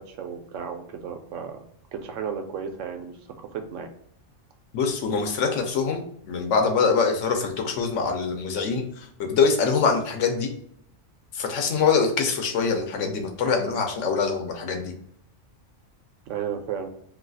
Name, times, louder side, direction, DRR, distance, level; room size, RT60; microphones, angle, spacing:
voice 1, 0.0-1.7 1.9-3.9 16.3-16.9, right 7 dB, 85° right, 5 dB, 0.9 m, -34 dB
voice 2, 4.7-10.5 11.3-14.9, left 5 dB, 85° left, 3 dB, 1.0 m, -24 dB
2.7 x 2.3 x 3.8 m, 0.66 s
omnidirectional pair, 1.3 m